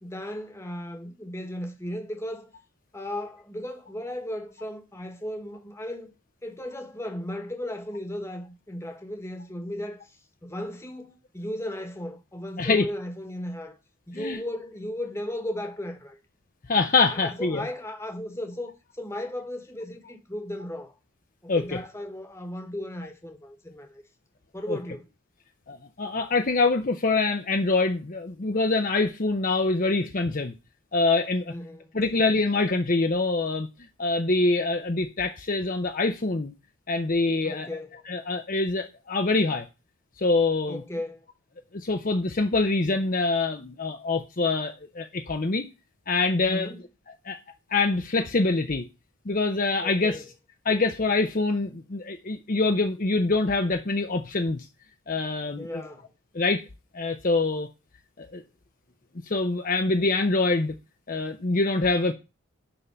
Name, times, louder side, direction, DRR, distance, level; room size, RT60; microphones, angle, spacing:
voice 1, 0.0-2.5 2.9-6.1 6.4-13.8 14.1-16.2 17.1-20.9 21.4-24.0 24.5-25.1 31.5-31.9 37.4-38.0 40.7-41.2 46.5-46.8 49.8-50.3 55.6-56.1, left 1 dB, 10° left, 1.3 m, -36 dB
voice 2, 16.7-17.6 21.5-21.8 24.7-24.8 25.7-30.5 30.9-31.5 31.9-33.7 34.0-36.5 36.9-37.7 38.1-39.7 40.2-40.8 41.7-45.7 46.1-46.7 47.3-47.4 47.7-48.9 49.3-50.2 50.7-54.6 55.1-55.8 56.3-56.6 56.9-57.7 58.2-58.4 59.3-60.7 61.1-62.1, left 3 dB, 40° left, 0.7 m, -25 dB
11.0 x 3.8 x 6.8 m
head